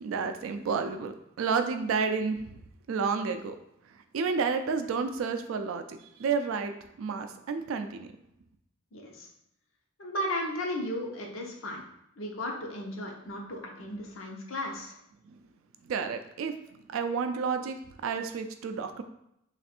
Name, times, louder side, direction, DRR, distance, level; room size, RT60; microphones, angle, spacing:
voice 1, 0.0-2.6 2.9-3.6 3.9-6.7 7.0-8.1 15.3-15.4 15.8-19.0, right 5 dB, 80° right, 8 dB, 0.3 m, -31 dB
voice 2, 8.9-9.3 10.0-11.8 12.2-15.0, left 1 dB, 80° left, 0 dB, 0.8 m, -35 dB
3.3 x 2.5 x 4.2 m, 0.77 s
head